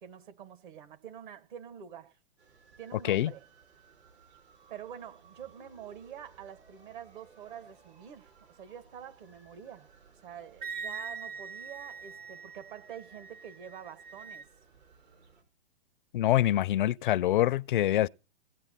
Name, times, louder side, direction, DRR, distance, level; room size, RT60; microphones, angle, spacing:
voice 1, 0.0-2.2 2.8-3.4 4.7-9.9 10.2-14.5, right 9 dB, 50° right, 1.5 m, -47 dB
sound 1, 2.4-15.4, right 5 dB, 75° right, 5.3 m, -60 dB
Wind instrument woodwind instrument, 10.6-14.5, right 5 dB, 20° right, 0.6 m, -43 dB
voice 2, 16.1-18.1, left 13 dB, 50° left, 0.5 m, -25 dB
17.0 x 8.7 x 4.2 m
hypercardioid pair, 125°, 33 cm